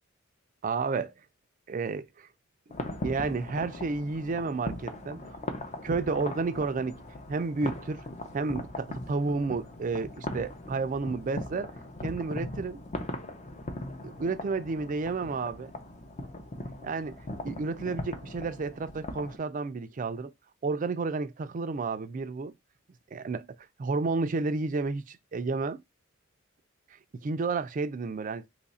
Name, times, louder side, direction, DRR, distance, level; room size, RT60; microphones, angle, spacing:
voice 1, 0.6-1.1 1.7-2.3 3.0-5.2 5.8-7.0 7.3-8.0 8.3-11.7 12.0-12.8 14.0-15.7 16.8-17.2 17.4-20.3 20.6-22.5 23.1-23.5 23.8-25.8 27.2-28.5, right 4 dB, 40° right, 0.4 m, -31 dB
sound 1, 2.7-19.4, left 1 dB, 35° left, 0.6 m, -39 dB
3.1 x 2.4 x 4.0 m
head